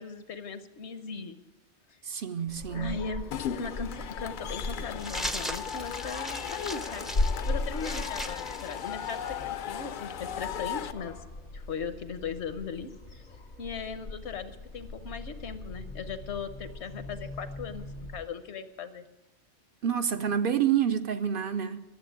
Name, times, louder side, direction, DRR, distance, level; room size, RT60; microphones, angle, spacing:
voice 1, 0.0-1.4 2.7-7.1 7.5-11.2 11.5-13.2 13.6-19.0, left 5 dB, 75° left, 1.1 m, -38 dB
voice 2, 2.0-3.0 19.8-21.8, right 8 dB, 60° right, 0.7 m, -28 dB
Dog, 2.5-18.2, left 2 dB, 90° left, 2.2 m, -38 dB
Cheering / Crowd, 3.3-10.9, left 9 dB, 55° left, 0.6 m, -37 dB
sound 1, 5.0-9.4, equal, ahead, 0.4 m, -39 dB
12.0 x 7.5 x 9.8 m
omnidirectional pair, 1.2 m